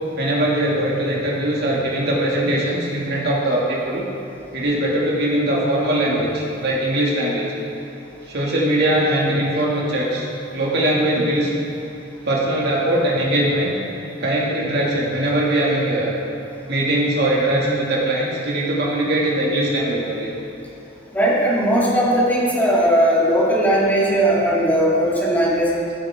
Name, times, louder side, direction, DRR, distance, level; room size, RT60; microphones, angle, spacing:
voice 1, 0.2-4.1 4.5-7.5 8.3-10.3 10.5-11.5 12.2-13.8 14.2-16.1 16.7-20.3, right 1 dB, 60° right, -4 dB, 2.2 m, -21 dB
voice 2, 21.1-25.8, equal, 10° left, -5 dB, 1.9 m, -18 dB
15.0 x 11.5 x 3.7 m, 2.9 s
head